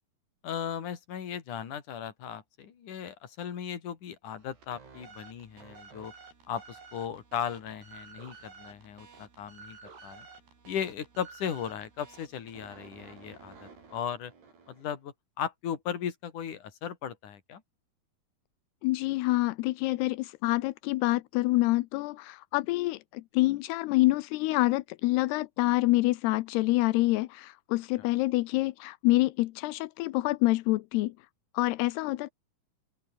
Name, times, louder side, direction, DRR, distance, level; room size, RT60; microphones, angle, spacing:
voice 1, 0.4-6.1 6.5-10.3 10.7-14.3 14.7-17.6, left 8 dB, 55° left, 4.0 m, -37 dB
sound 1, 4.4-15.0, right 5 dB, 90° right, 8.9 m, -52 dB
voice 2, 18.8-31.1 31.5-32.3, left 19 dB, 90° left, 2.8 m, -27 dB
open air
omnidirectional pair, 4.6 m